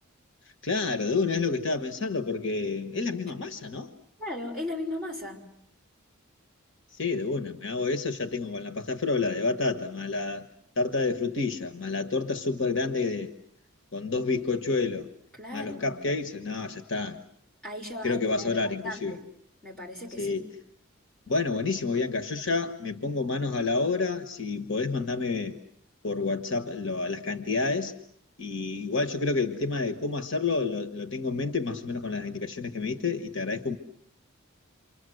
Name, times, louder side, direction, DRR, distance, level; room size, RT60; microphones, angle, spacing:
voice 1, 0.6-3.9 7.0-10.5 10.8-13.3 13.9-15.1 15.5-17.2 18.0-19.2 20.2-20.4 21.3-25.6 26.0-27.9 28.4-33.8, left 3 dB, 55° left, 8 dB, 1.4 m, -29 dB
voice 2, 4.2-5.4 15.4-16.0 17.6-19.2 19.6-20.4, left 1 dB, 5° left, -1 dB, 5.9 m, -37 dB
29.0 x 26.0 x 7.9 m, 0.72 s
head